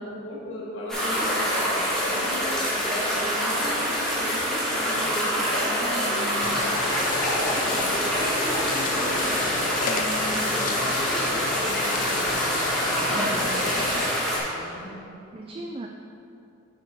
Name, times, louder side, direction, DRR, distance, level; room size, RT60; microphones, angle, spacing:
voice 1, 0.0-6.2 6.5-13.7 14.1-15.1, equal, 75° left, -6 dB, 1.7 m, -37 dB
sound 1, 0.9-14.4, equal, 5° left, 1.7 m, -26 dB
voice 2, 5.6-6.6 9.9-10.4 13.1-13.7 15.3-15.9, right 1 dB, 25° right, 2 dB, 0.3 m, -36 dB
sound 2, 6.4-14.1, left 4 dB, 40° left, 0.5 m, -32 dB
7.5 x 5.9 x 4.6 m, 2.7 s
head